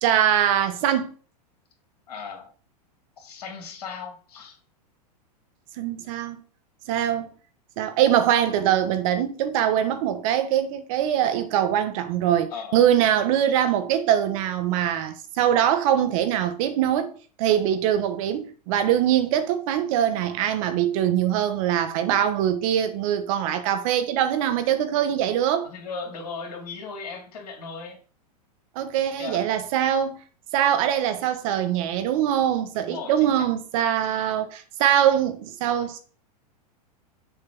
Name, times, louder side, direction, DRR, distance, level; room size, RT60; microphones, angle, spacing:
voice 1, 0.0-1.1 5.8-6.4 6.9-7.3 7.8-17.1 17.4-25.7 28.7-30.2 30.5-36.0, right 10 dB, 55° right, 1.2 m, -23 dB
voice 2, 2.1-2.5 3.2-4.6 12.5-12.8 25.6-28.0 29.2-29.5 32.7-33.4 34.3-34.4, left 5 dB, 65° left, 2.5 m, -37 dB
6.9 x 3.3 x 6.1 m
hypercardioid pair, 115°, 21 cm